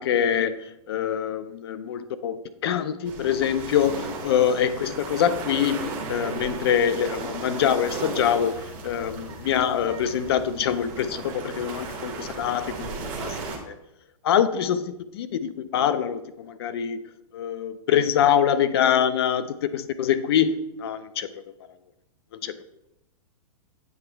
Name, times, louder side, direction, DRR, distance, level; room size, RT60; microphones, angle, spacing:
voice 1, 0.0-13.8 14.2-17.0 17.3-19.5 19.7-21.3 22.4-22.5, left 9 dB, 45° left, 0.4 m, -24 dB
sound 1, 3.0-13.6, right 4 dB, 20° right, 0.8 m, -36 dB
7.9 x 3.0 x 4.4 m
hypercardioid pair, 170°, 19 cm